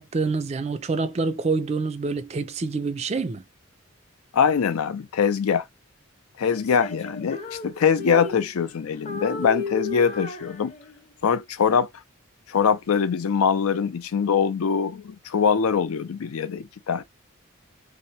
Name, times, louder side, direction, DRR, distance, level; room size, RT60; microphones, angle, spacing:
voice 1, 0.0-3.4, right 4 dB, 30° right, 0.3 m, -26 dB
voice 2, 4.3-5.7 6.4-10.7 11.2-11.9 12.5-17.0, left 6 dB, 90° left, 0.4 m, -23 dB
Female singing, 6.5-8.7 9.0-11.1, left 4 dB, 35° left, 0.7 m, -34 dB
2.8 x 2.1 x 2.7 m
head